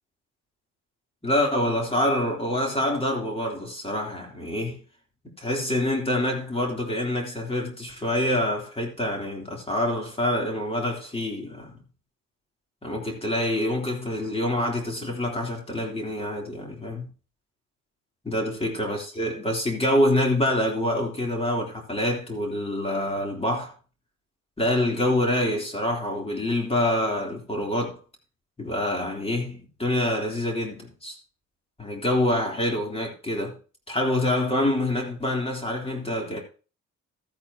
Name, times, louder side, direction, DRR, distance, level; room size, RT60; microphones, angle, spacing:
voice 1, 1.2-4.8 5.4-11.8 12.8-17.1 18.2-23.7 24.6-28.0 28.6-31.2 31.8-33.6 33.9-36.4, left 1 dB, 20° left, 3.5 m, -26 dB
14.0 x 8.7 x 3.0 m
cardioid pair, 90°, 30 cm